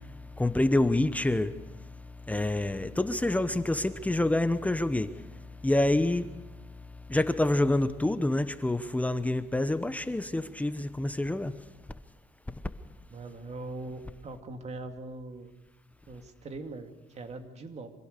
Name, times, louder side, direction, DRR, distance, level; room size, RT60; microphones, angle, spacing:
voice 1, 0.4-1.5 2.3-5.1 5.6-6.3 7.1-11.5, left 1 dB, 10° left, 11 dB, 0.9 m, -27 dB
voice 2, 13.1-15.5 16.1-17.9, right 2 dB, 40° right, 6 dB, 2.4 m, -41 dB
25.5 x 16.5 x 6.7 m, 1.1 s
cardioid pair, 110°, 17 cm